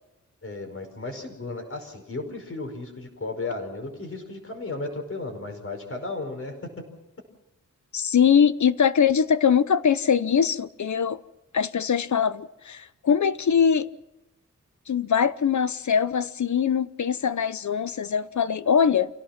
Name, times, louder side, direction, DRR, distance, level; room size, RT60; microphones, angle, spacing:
voice 1, 0.4-6.8, left 3 dB, 45° left, 5.3 m, -34 dB
voice 2, 7.9-11.2 11.5-13.9 14.9-19.1, left 7 dB, 70° left, 0.9 m, -22 dB
28.0 x 17.5 x 6.0 m
wide cardioid pair, 125°, 31 cm